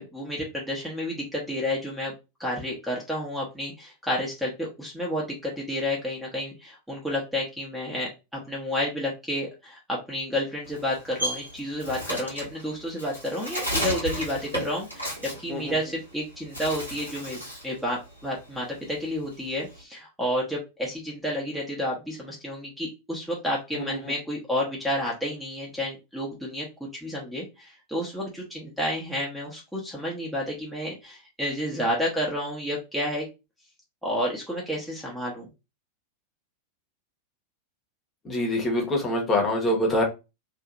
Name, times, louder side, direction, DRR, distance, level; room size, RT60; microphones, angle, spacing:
voice 1, 0.0-2.1 2.4-8.1 8.5-17.4 17.6-33.3 34.0-35.5, left 1 dB, ahead, 0.8 m, -30 dB
Bird, 10.6-16.1 16.4-17.7 18.1-19.8, equal, 90° left, 1.3 m, -33 dB
voice 2, 23.7-24.1 38.2-40.0, left 1 dB, 20° left, 0.9 m, -25 dB
2.7 x 2.4 x 2.4 m
figure-of-eight pair, 90°, 0 cm